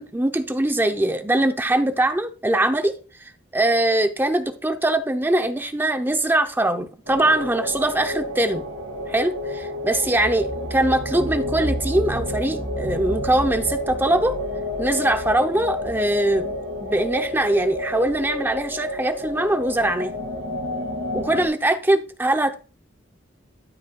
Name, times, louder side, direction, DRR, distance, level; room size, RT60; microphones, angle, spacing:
voice 1, 0.0-2.9 3.5-8.7 9.1-14.4 14.8-20.1 21.1-22.5, right 1 dB, 10° right, 0.6 m, -22 dB
sound 1, 7.1-21.5, left 1 dB, 80° right, 2.2 m, -29 dB
12.5 x 5.3 x 2.3 m
head